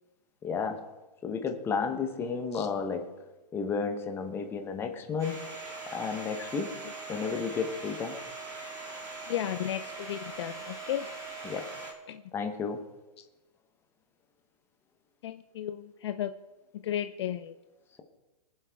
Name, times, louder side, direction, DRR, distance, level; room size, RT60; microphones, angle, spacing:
voice 1, 0.4-0.9 1.2-3.1 3.5-5.5 5.9-6.7 7.1-8.2 11.4-11.7 12.3-12.8, left 5 dB, 10° left, 6 dB, 0.9 m, -32 dB
Domestic sounds home sounds, 5.2-11.9, right 3 dB, 15° right, 2.1 m, -41 dB
voice 2, 9.3-11.1 12.1-12.2 15.2-16.3 16.8-17.5, left 11 dB, 40° left, 9 dB, 0.5 m, -34 dB
22.5 x 7.6 x 3.5 m, 1.1 s
hypercardioid pair, 155°, 21 cm